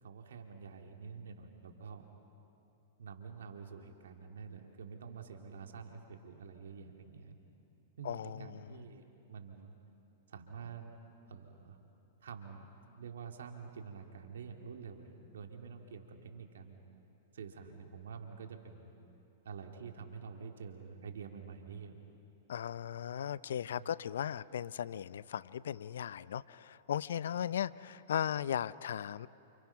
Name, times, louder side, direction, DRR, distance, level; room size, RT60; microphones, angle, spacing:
voice 1, 0.0-2.1 3.0-7.3 8.0-9.7 10.3-10.9 11.3-11.8 12.2-12.7 13.0-16.8 17.3-18.9 19.4-22.0 23.8-23.9 24.6-24.7 27.3-27.4, right 6 dB, 80° right, 3 dB, 2.6 m, -48 dB
voice 2, 8.0-8.4 22.5-29.3, left 9 dB, 75° left, 18 dB, 0.6 m, -37 dB
30.0 x 28.5 x 5.9 m, 2.9 s
hypercardioid pair, 120°, 0 cm